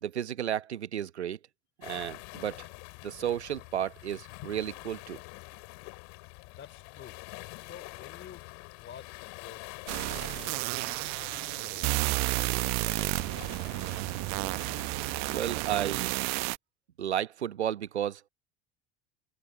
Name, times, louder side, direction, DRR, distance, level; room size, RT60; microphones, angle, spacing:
voice 1, 0.0-1.4 1.8-2.7 3.0-5.2 15.3-16.1 17.0-18.2, right 10 dB, 90° right, 1.0 m, -33 dB
sound 1, 1.8-15.5, left 35 dB, 65° left, 5.4 m, -47 dB
voice 2, 6.4-7.2 7.6-8.4 8.8-11.3 11.6-11.9 12.2-13.2, left 8 dB, 35° left, 3.8 m, -51 dB
sound 2, 9.9-16.6, right 25 dB, 55° right, 0.8 m, -31 dB
open air
hypercardioid pair, 75°, 32 cm